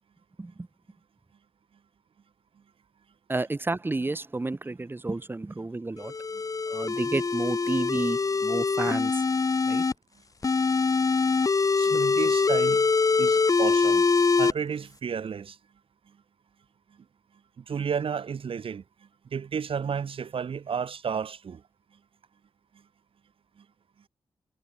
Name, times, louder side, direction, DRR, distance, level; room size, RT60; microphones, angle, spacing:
voice 1, 3.3-6.1 6.7-9.2 9.6-9.8, right 2 dB, 20° right, 6.2 m, -31 dB
sound 1, 6.0-9.9 10.4-14.5, left 4 dB, 35° left, 1.6 m, -24 dB
voice 2, 11.8-12.9 13.2-14.0 14.4-15.6 17.6-18.8 19.3-21.6, right 6 dB, 65° right, 4.4 m, -32 dB
wide cardioid pair, 145°, 10 cm